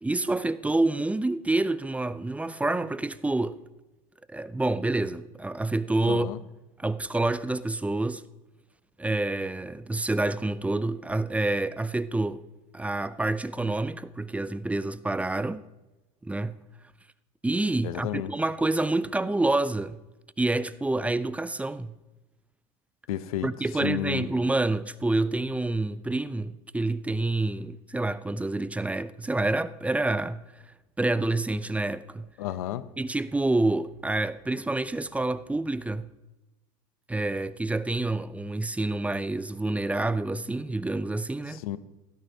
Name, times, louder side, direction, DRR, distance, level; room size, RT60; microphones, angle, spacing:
voice 1, 0.0-3.6 4.3-6.3 6.8-8.2 9.0-12.4 12.7-15.6 16.2-16.6 17.4-20.0 20.4-21.9 23.4-30.4 31.0-32.3 33.0-36.1 37.1-41.6, right 2 dB, 5° right, 0.4 m, -28 dB
voice 2, 6.1-6.4 17.8-18.3 23.1-23.5 23.8-24.3 32.4-32.8 41.5-41.8, left 12 dB, 80° left, 0.6 m, -31 dB
16.5 x 12.5 x 2.8 m
hypercardioid pair, 85°, 18 cm